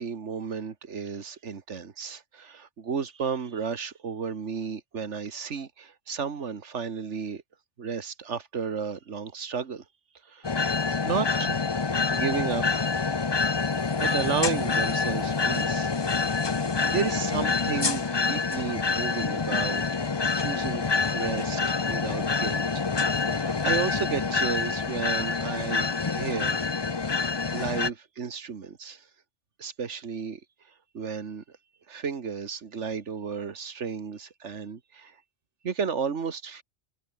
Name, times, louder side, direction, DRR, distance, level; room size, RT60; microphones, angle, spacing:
voice 1, 0.0-7.4 7.8-9.8 10.2-10.6 11.0-11.7 12.0-12.6 14.0-16.0 16.4-20.0 20.4-20.8 21.1-22.9 23.3-26.6 27.5-29.1 29.6-30.4 30.9-31.6 31.9-35.2 35.6-36.6, right 6 dB, 85° right, 1.8 m, -33 dB
sound 1, 10.4-27.9, left 4 dB, 25° left, 0.6 m, -27 dB
omnidirectional pair, 1.2 m